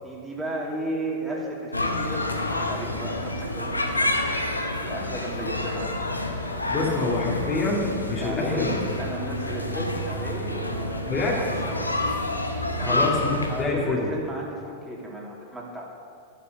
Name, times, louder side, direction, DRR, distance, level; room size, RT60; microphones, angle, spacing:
voice 1, 0.0-6.2 6.8-7.3 8.2-12.0 12.8-13.2 13.5-15.8, right 1 dB, 10° right, -3 dB, 2.8 m, -34 dB
sound 1, 1.7-13.6, left 1 dB, 85° left, 1.1 m, -28 dB
voice 2, 6.7-8.8 11.1-11.4 12.8-14.1, left 3 dB, 25° left, -3 dB, 2.1 m, -26 dB
12.0 x 10.0 x 6.4 m, 2.2 s
figure-of-eight pair, 90°, 0 cm